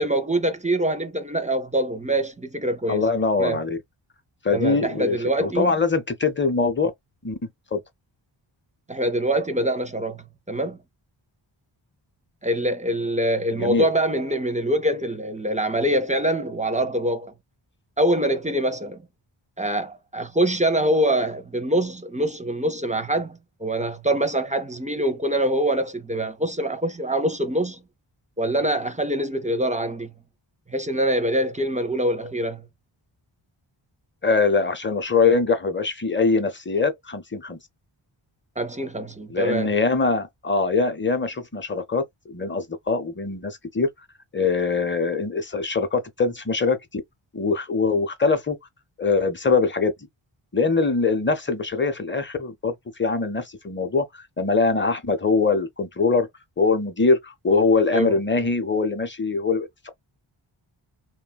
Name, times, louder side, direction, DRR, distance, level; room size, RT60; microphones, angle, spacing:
voice 1, 0.0-3.1 3.4-3.6 4.5-5.7 8.9-10.8 12.4-17.3 18.0-19.0 19.6-27.8 28.4-30.1 30.7-32.7 38.6-39.7 57.9-58.5, right 1 dB, 15° right, 0.4 m, -24 dB
voice 2, 2.9-3.8 4.4-6.9 7.2-7.3 7.7-7.8 13.5-13.9 34.2-37.6 39.3-43.9 44.3-47.0 47.3-48.6 49.0-49.9 50.5-56.3 56.6-59.9, left 4 dB, 25° left, 0.6 m, -23 dB
3.0 x 2.2 x 2.3 m
wide cardioid pair, 70°, 50 cm